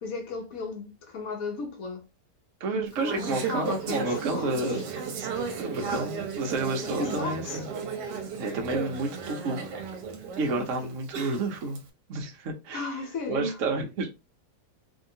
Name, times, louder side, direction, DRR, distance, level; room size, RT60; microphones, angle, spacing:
voice 1, 0.0-2.1 3.0-4.8 6.8-7.6 10.5-10.7 12.7-13.6, left 4 dB, 65° left, 1.1 m, -35 dB
voice 2, 2.6-4.8 5.1-5.3 5.6-7.7 8.4-9.7 10.4-11.8 12.1-12.8 13.3-14.2, right 3 dB, 55° right, 1.0 m, -30 dB
Conversation / Chatter, 2.9-11.8, right 5 dB, 80° right, 1.3 m, -35 dB
2.8 x 2.7 x 2.7 m
omnidirectional pair, 1.8 m